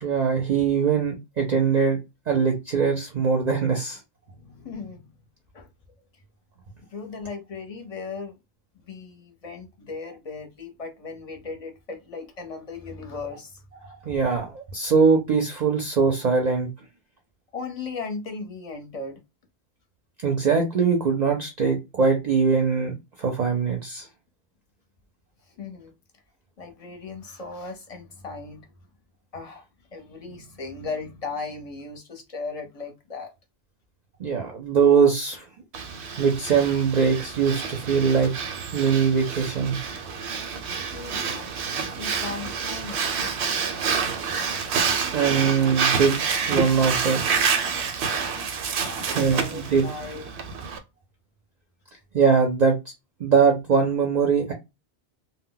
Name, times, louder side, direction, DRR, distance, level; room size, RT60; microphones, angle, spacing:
voice 1, 0.0-2.0 2.3-4.0 13.8-16.7 20.2-24.1 34.2-35.4 36.2-38.3 38.7-39.8 45.1-46.2 46.5-47.2 49.1-49.9 52.1-52.7 53.2-54.5, right 5 dB, 50° right, 0.6 m, -22 dB
voice 2, 4.3-5.1 5.5-5.7 6.9-8.4 8.9-13.6 17.5-19.2 25.5-25.9 26.6-28.7 29.3-33.3 40.9-41.5 41.9-43.5 48.8-50.3, left 4 dB, 40° left, 0.7 m, -37 dB
Breathing, 35.7-50.8, right 6 dB, 80° right, 0.9 m, -28 dB
2.1 x 2.0 x 3.8 m
omnidirectional pair, 1.1 m